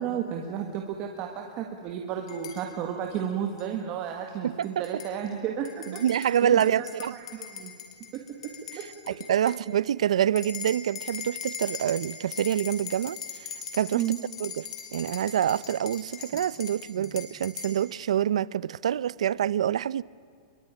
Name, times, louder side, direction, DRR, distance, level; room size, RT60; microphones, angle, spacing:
voice 1, 0.0-6.0 6.4-6.9 7.1-7.7 8.1-9.2 13.9-14.2 16.3-16.4 17.0-17.1, right 9 dB, 25° right, 1.7 m, -33 dB
sound 1, 2.3-2.6 3.6-3.7 4.6-5.1 5.6-9.6 10.4-17.8, left 7 dB, 65° left, 5.0 m, -40 dB
voice 2, 4.4-5.0 5.9-7.2 8.7-13.2 13.7-14.0 14.4-14.7 14.9-20.0, right 10 dB, 80° right, 0.6 m, -26 dB
25.5 x 22.5 x 10.0 m
supercardioid pair, 180°, 3 cm